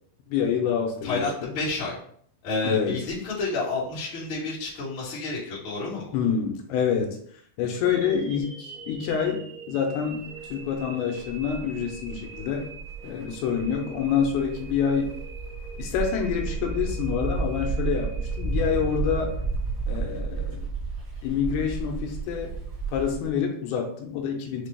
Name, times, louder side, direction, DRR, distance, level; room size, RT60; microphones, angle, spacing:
voice 1, 0.3-1.6 2.6-3.0 6.1-7.2 7.6-10.2 10.5-12.7 13.0-15.1 15.8-19.3 19.9-20.6 21.2-22.5 22.9-24.7, left 7 dB, 85° left, 2 dB, 2.6 m, -27 dB
voice 2, 1.0-1.9 2.4-6.1, left 3 dB, 50° left, -8 dB, 1.5 m, -30 dB
sound 1, 7.8-19.9, right 4 dB, 75° right, 1.5 m, -45 dB
sound 2, 10.4-10.8 11.2-23.3, right 3 dB, 60° right, 1.0 m, -32 dB
6.3 x 2.2 x 3.2 m, 0.62 s
omnidirectional pair, 4.6 m